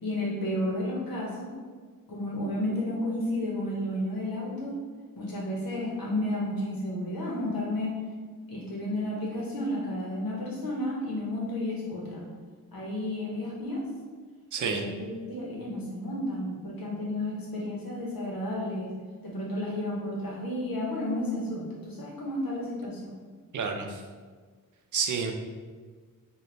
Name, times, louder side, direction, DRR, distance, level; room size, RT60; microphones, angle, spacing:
voice 1, 0.0-1.5 2.1-4.8 5.1-8.0 8.5-12.3 12.7-13.8 14.6-18.9 19.2-23.1, left 1 dB, 80° left, -4 dB, 1.1 m, -32 dB
voice 2, 14.5-14.8 23.5-24.0 24.9-25.3, right 6 dB, 60° right, 4 dB, 0.5 m, -29 dB
3.2 x 2.4 x 3.9 m, 1.5 s
wide cardioid pair, 95°, 34 cm